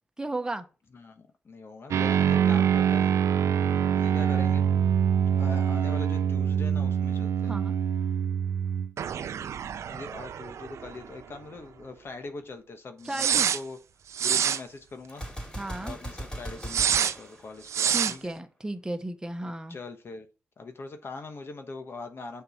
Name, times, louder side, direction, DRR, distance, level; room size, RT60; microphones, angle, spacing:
voice 1, 0.2-0.6 7.5-7.8 13.1-13.5 15.6-16.0 17.9-19.8, right 2 dB, 15° right, 1.1 m, -34 dB
voice 2, 0.9-3.1 3.9-4.6 5.4-7.5 9.9-13.8 14.2-15.2 15.8-18.3 19.7-20.3 20.6-22.4, left 3 dB, 55° left, 1.2 m, -42 dB
sound 1, 1.9-11.1 11.3-11.4 13.1-13.6 14.1-14.6 16.7-17.1 17.7-18.1, right 8 dB, 75° right, 0.5 m, -25 dB
Gunshot gunfire, 15.1-18.2, right 1 dB, 15° left, 3.1 m, -39 dB
6.7 x 4.7 x 5.7 m
cardioid pair, 75°, 5 cm